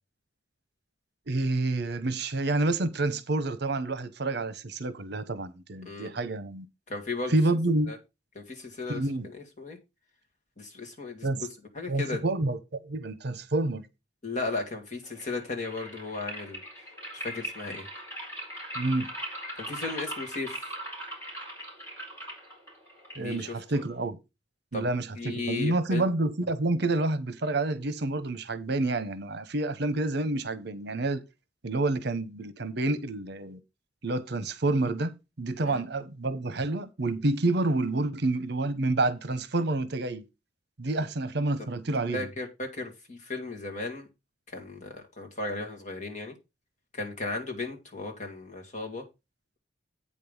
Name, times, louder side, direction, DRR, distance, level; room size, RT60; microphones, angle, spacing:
voice 1, 1.3-6.7 7.3-8.0 8.9-9.3 11.2-11.5 11.9-13.9 18.7-19.1 23.2-24.2 24.7-31.2 31.6-33.6 34.0-40.2 40.8-42.3, right 2 dB, 60° right, 0.9 m, -28 dB
voice 2, 6.9-7.3 7.9-8.0 8.4-9.8 10.6-11.3 11.7-12.2 14.2-16.6 17.1-17.9 19.6-20.6 23.2-23.5 23.7-23.8 24.7-24.9 25.2-26.1 35.7-35.8 42.1-44.1 44.5-46.3 46.9-49.0, left 3 dB, 40° left, 2.2 m, -35 dB
sound 1, 15.1-24.1, right 1 dB, 15° left, 4.7 m, -40 dB
8.5 x 5.4 x 5.4 m
head